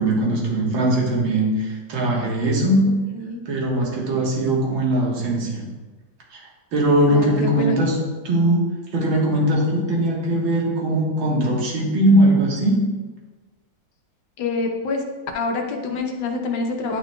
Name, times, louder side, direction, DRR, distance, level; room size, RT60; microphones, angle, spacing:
voice 1, 0.0-2.9 3.5-5.7 6.3-6.4 6.7-8.0 8.2-8.7 8.9-12.8, right 1 dB, 65° right, -2 dB, 2.1 m, -20 dB
voice 2, 7.1-7.7 14.4-15.0 15.3-17.0, left 3 dB, 70° left, 2 dB, 1.4 m, -26 dB
10.5 x 5.7 x 2.3 m, 1.3 s
omnidirectional pair, 2.3 m